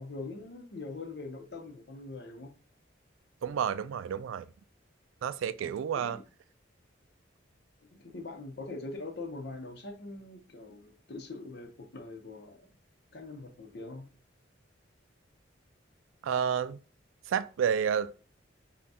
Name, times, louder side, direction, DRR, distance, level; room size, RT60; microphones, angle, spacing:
voice 1, 0.0-2.5 5.6-6.2 7.8-12.7 13.1-14.1, left 3 dB, 55° left, 0.7 m, -43 dB
voice 2, 3.4-4.5 5.2-6.2 16.2-16.8 17.3-18.1, right 8 dB, 85° right, 0.3 m, -30 dB
5.3 x 2.3 x 2.8 m
head